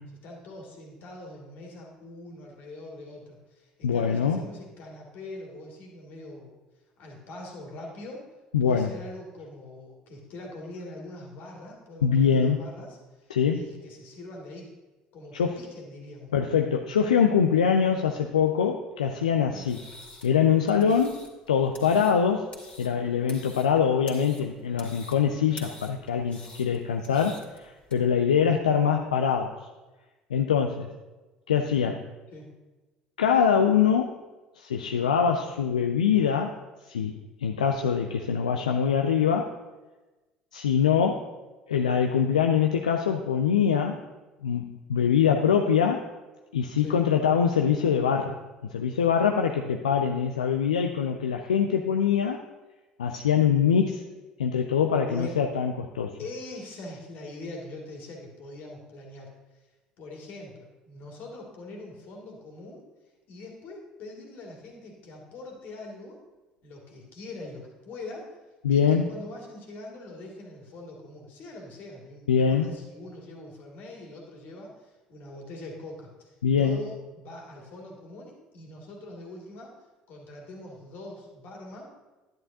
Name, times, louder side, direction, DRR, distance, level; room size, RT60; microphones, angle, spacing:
voice 1, 0.2-6.6 7.0-8.3 8.6-14.7 15.1-16.3 19.5-19.7 32.3-32.5 46.8-47.0 55.0-55.4 56.2-59.6 60.0-62.9 63.3-66.2 66.6-68.4 68.7-79.7 80.1-81.8, left 2 dB, 50° left, 0 dB, 2.2 m, -43 dB
voice 2, 3.8-4.4 8.5-8.9 12.0-12.6 13.3-13.7 15.3-15.6 16.3-19.8 20.2-22.5 22.8-29.5 30.3-30.9 31.5-32.0 33.2-34.1 34.6-36.6 36.9-39.5 40.5-41.3 41.7-44.0 44.4-46.1 46.5-48.4 48.7-52.4 53.0-54.0 54.4-56.2 68.6-69.1 72.3-72.7 76.4-76.8, left 7 dB, 75° left, 4 dB, 0.4 m, -23 dB
sound 1, 19.6-27.9, left 2 dB, 30° left, 2.3 m, -48 dB
11.0 x 10.5 x 2.7 m, 1.2 s
figure-of-eight pair, 60°, 4 cm